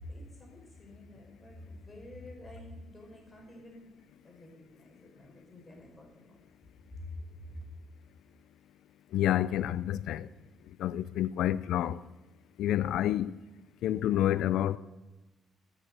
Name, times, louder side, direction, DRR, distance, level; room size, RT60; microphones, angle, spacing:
voice 1, 0.0-3.9 4.2-6.4 6.9-7.1 7.3-7.6, left 1 dB, 25° left, 5.1 m, -48 dB
voice 2, 9.1-10.3 10.8-12.0 12.6-13.3 13.8-14.8, left 12 dB, 85° left, 0.5 m, -28 dB
13.5 x 8.0 x 6.6 m
cardioid pair, 90°, 0 cm